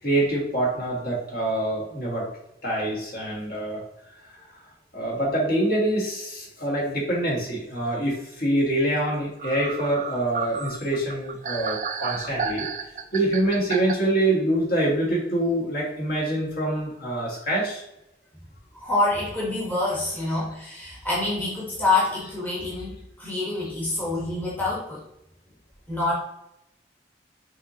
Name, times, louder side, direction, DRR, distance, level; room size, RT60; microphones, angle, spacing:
voice 1, 0.0-2.3 2.6-3.8 4.3-4.5 4.9-12.7 13.1-17.8 20.3-20.4 22.8-22.9 23.6-23.7, right 1 dB, 55° left, -4 dB, 1.5 m, -25 dB
sound 1, 9.0-9.1 9.4-13.9, right 6 dB, 40° right, 0.3 m, -32 dB
voice 2, 18.7-25.0 25.9-26.1, left 2 dB, 10° left, -6 dB, 1.0 m, -26 dB
5.6 x 3.0 x 2.7 m, 0.83 s
head